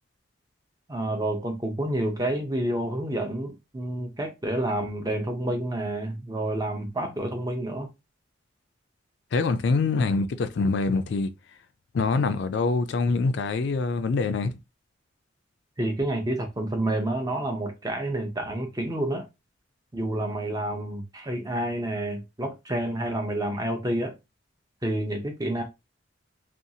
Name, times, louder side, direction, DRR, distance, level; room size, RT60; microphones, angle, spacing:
voice 1, 0.9-7.9 15.8-19.3 19.9-24.2 24.8-25.6, right 1 dB, 20° right, 0.5 m, -29 dB
voice 2, 9.3-11.3 11.9-14.6, left 4 dB, 60° left, 0.3 m, -25 dB
2.6 x 2.3 x 2.7 m
head